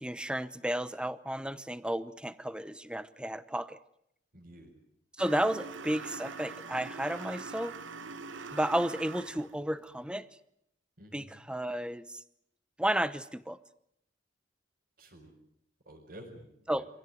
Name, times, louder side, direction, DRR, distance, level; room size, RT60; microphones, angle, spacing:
voice 1, 0.0-3.8 5.2-7.8 8.5-10.3 11.1-12.2 12.8-13.6 16.7-16.9, right 1 dB, 5° right, 15 dB, 0.9 m, -32 dB
voice 2, 4.3-4.8 11.0-11.3 15.0-15.3 15.8-16.9, right 1 dB, 50° right, -4 dB, 5.1 m, -51 dB
sound 1, 5.2-9.6, right 4 dB, 85° right, 1.2 m, -43 dB
26.0 x 16.5 x 9.2 m, 0.75 s
head